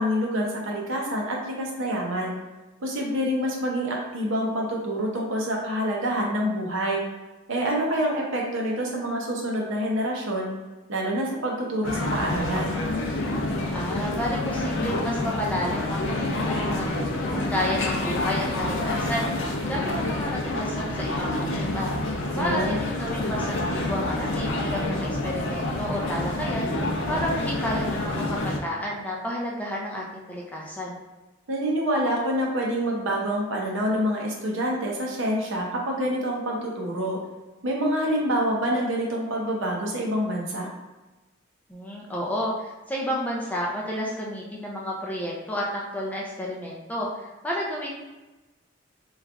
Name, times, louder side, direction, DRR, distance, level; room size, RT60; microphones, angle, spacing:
voice 1, 0.0-2.4 2.8-7.0 7.5-10.5 10.9-12.8 22.3-22.8 31.5-37.2 37.6-40.7, equal, 65° right, -1 dB, 0.7 m, -27 dB
sound 1, 11.8-28.6, left 1 dB, 65° left, 0.5 m, -28 dB
voice 2, 13.7-16.9 17.3-19.3 19.7-21.9 22.3-26.7 27.1-31.0 41.7-47.9, equal, 5° left, -3 dB, 0.4 m, -31 dB
3.1 x 2.4 x 3.5 m, 1.1 s
head